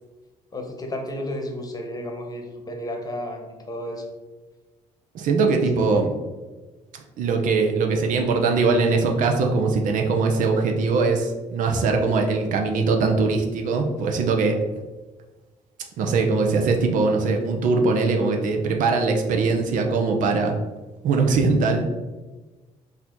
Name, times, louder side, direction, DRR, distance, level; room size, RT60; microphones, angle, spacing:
voice 1, 0.5-4.1 5.7-6.1, left 1 dB, 25° left, 3 dB, 1.0 m, -32 dB
voice 2, 5.1-6.1 7.2-14.5 16.0-20.5 21.0-21.9, right 4 dB, 70° right, 3 dB, 0.7 m, -21 dB
4.0 x 2.8 x 4.4 m, 1.2 s
cardioid pair, 80°, 14 cm